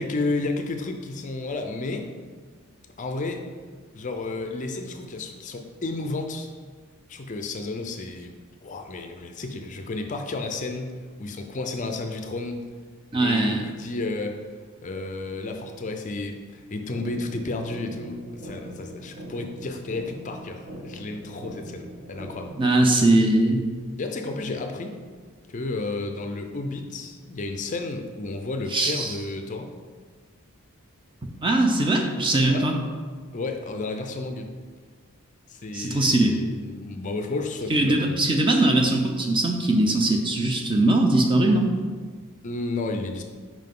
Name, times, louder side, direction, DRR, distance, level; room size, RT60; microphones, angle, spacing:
voice 1, 0.0-2.1 3.0-3.5 3.9-6.5 7.1-8.3 8.6-10.9 11.2-12.6 13.2-14.5 14.8-22.5 24.0-25.0 25.5-29.7 32.5-32.7 33.3-34.5 35.5-38.4 42.4-43.2, left 3 dB, 35° left, 5 dB, 0.4 m, -32 dB
voice 2, 13.1-13.7 22.6-23.6 28.7-29.1 31.4-32.7 35.7-36.4 37.7-41.7, right 2 dB, 20° right, 3 dB, 0.5 m, -21 dB
sound 1, 16.9-22.9, equal, 45° right, 1.2 m, -41 dB
5.5 x 4.9 x 3.8 m, 1.5 s
head